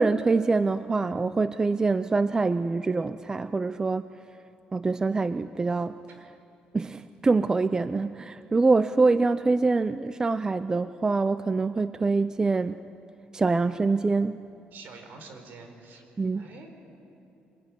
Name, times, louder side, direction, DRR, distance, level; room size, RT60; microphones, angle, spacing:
voice 1, 0.0-4.1 4.7-6.0 6.7-12.8 13.3-14.4 16.2-16.5, right 3 dB, 20° right, 13 dB, 0.5 m, -25 dB
voice 2, 14.7-16.0 16.3-16.7, right 3 dB, 65° right, 5 dB, 4.7 m, -46 dB
24.0 x 22.5 x 9.9 m, 2.9 s
cardioid pair, 120°, 3 cm